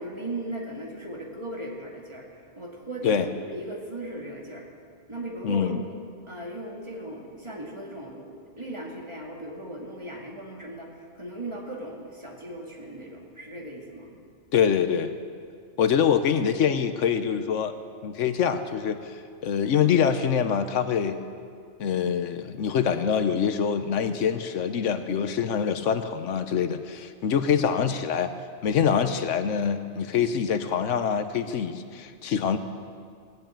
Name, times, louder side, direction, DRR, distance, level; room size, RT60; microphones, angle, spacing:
voice 1, 0.0-4.7 5.1-5.9 6.3-10.9 11.1-14.2, right 1 dB, 25° right, -2 dB, 2.4 m, -37 dB
voice 2, 5.4-5.8 14.5-15.1 15.8-17.7 18.0-21.2 21.8-28.3 28.6-32.6, left 7 dB, 85° left, 10 dB, 1.1 m, -25 dB
17.5 x 8.2 x 8.8 m, 2.2 s
omnidirectional pair, 1.3 m